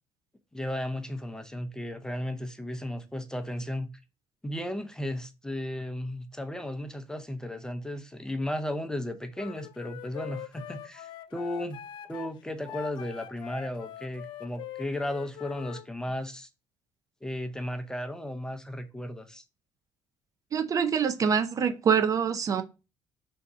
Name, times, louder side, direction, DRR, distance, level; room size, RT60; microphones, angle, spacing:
voice 1, 0.5-3.9 4.4-11.8 12.1-16.5 17.2-19.4, left 1 dB, 10° left, 0.5 m, -35 dB
Wind instrument woodwind instrument, 9.3-15.9, left 12 dB, 65° left, 0.3 m, -43 dB
voice 2, 20.5-22.6, right 7 dB, 40° right, 0.5 m, -25 dB
3.4 x 2.7 x 4.1 m
cardioid pair, 90°, 9 cm